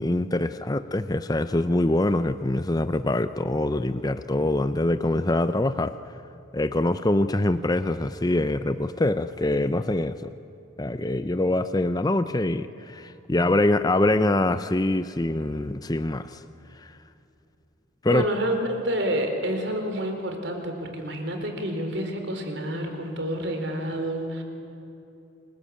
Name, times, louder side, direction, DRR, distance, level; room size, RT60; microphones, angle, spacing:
voice 1, 0.0-6.0 6.5-10.3 10.8-16.4 16.8-16.9 18.0-18.3, left 1 dB, 20° left, 11 dB, 0.6 m, -24 dB
voice 2, 18.1-24.4, right 1 dB, 60° right, 5 dB, 4.2 m, -28 dB
29.0 x 21.5 x 8.7 m, 2.7 s
head